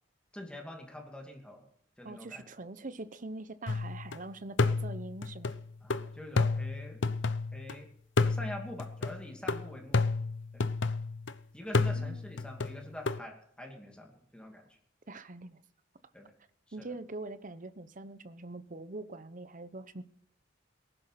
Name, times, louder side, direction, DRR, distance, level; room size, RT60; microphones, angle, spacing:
voice 1, 0.3-1.7 2.0-2.4 5.8-7.0 7.5-7.9 8.2-10.2 10.5-10.6 11.5-14.8 16.1-16.3 16.7-16.9, left 1 dB, 5° left, 1 dB, 2.6 m, -45 dB
voice 2, 2.0-5.5 11.9-12.2 15.1-15.6 16.7-20.0, right 2 dB, 45° right, 13 dB, 0.9 m, -43 dB
sound 1, 3.7-4.2 4.6-7.7 8.2-11.3 11.7-13.2, left 3 dB, 70° left, 0.8 m, -31 dB
19.0 x 11.0 x 5.8 m, 0.65 s
head